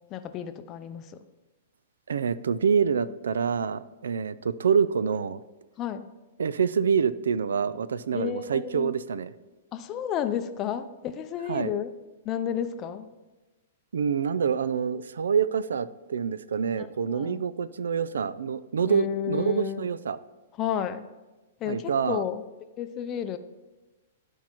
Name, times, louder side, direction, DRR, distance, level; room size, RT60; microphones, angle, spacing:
voice 1, 0.1-1.2 5.8-6.1 8.1-8.9 9.7-11.9 12.2-13.1 17.1-17.5 18.9-19.8 20.6-21.1 21.6-22.4 22.8-23.4, left 9 dB, 30° left, 10 dB, 0.5 m, -32 dB
voice 2, 2.1-5.4 6.4-9.3 11.5-11.7 13.9-20.2 21.7-22.2, right 6 dB, 80° right, 17 dB, 0.3 m, -26 dB
12.5 x 4.5 x 3.0 m, 1.1 s
hypercardioid pair, 125°, 0 cm